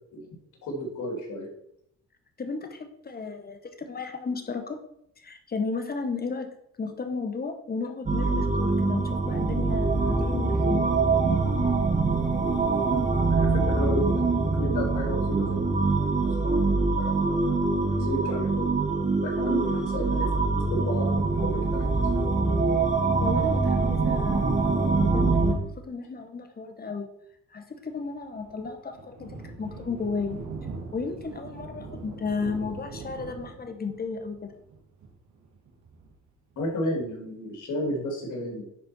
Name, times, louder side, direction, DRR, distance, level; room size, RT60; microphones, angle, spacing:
voice 1, 0.6-1.5 13.3-17.3 17.9-18.8 19.2-22.3 36.6-38.6, equal, 75° left, 0 dB, 3.1 m, -33 dB
voice 2, 2.4-4.8 5.2-10.9 23.2-27.1 27.5-30.4 30.9-34.5, left 4 dB, 30° left, 7 dB, 1.3 m, -34 dB
sound 1, 8.1-25.5, right 3 dB, 25° right, 1.3 m, -24 dB
Thunder, 27.9-37.1, right 4 dB, 70° right, 1.9 m, -42 dB
10.5 x 4.3 x 4.5 m, 0.74 s
cardioid pair, 90°, 30 cm